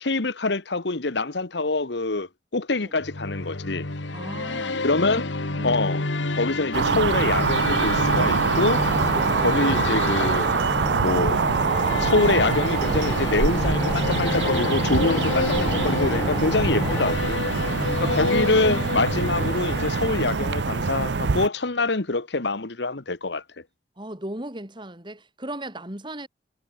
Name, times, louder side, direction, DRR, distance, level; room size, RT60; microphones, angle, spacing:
voice 1, 0.0-3.9 4.8-5.2 5.6-6.0 6.3-8.8 9.4-10.5 11.0-11.4 12.0-17.4 18.0-23.4, left 3 dB, 70° left, 1.3 m, -25 dB
sound 1, 3.0-20.7, left 2 dB, 85° left, 2.0 m, -29 dB
voice 2, 4.1-4.8 5.5-5.8 17.5-18.5 21.8-21.9 24.0-26.3, right 1 dB, 25° right, 3.7 m, -37 dB
sound 2, 6.7-21.5, right 4 dB, 70° right, 0.6 m, -24 dB
sound 3, 8.7-17.1, equal, ahead, 2.9 m, -34 dB
head